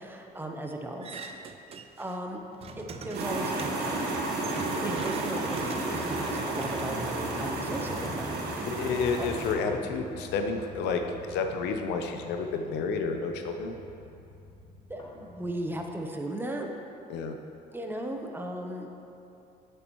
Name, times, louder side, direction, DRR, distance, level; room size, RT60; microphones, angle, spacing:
voice 1, 0.0-1.5 2.0-2.4 2.8-4.0 4.8-8.7 9.2-9.3 14.9-16.7 17.7-18.9, right 1 dB, 10° right, 2 dB, 0.8 m, -37 dB
sound 1, 1.0-2.1 2.4-7.8, right 5 dB, 35° right, 0.5 m, -42 dB
sound 2, 2.6-15.9, left 2 dB, 25° left, 1.2 m, -45 dB
sound 3, 3.1-9.5, right 2 dB, 70° right, 1.4 m, -32 dB
voice 2, 4.5-4.9 8.7-11.0 11.3-13.8 17.1-17.3, left 4 dB, 85° left, 5 dB, 0.7 m, -30 dB
9.6 x 7.8 x 3.1 m, 2.8 s
cardioid pair, 110°, 17 cm